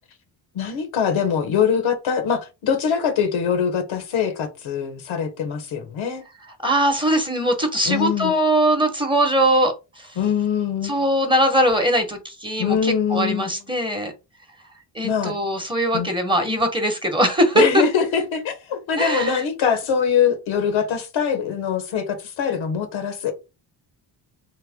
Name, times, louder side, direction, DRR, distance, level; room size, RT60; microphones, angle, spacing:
voice 1, 0.5-6.2 7.8-8.3 10.2-11.0 12.6-13.5 15.0-15.3 15.9-16.1 17.5-23.3, left 7 dB, 75° left, 1.1 m, -23 dB
voice 2, 6.6-10.2 10.8-14.1 14.9-17.8 19.0-19.4, right 1 dB, 10° right, 1.0 m, -21 dB
3.3 x 2.1 x 3.5 m
cardioid pair, 80°, 47 cm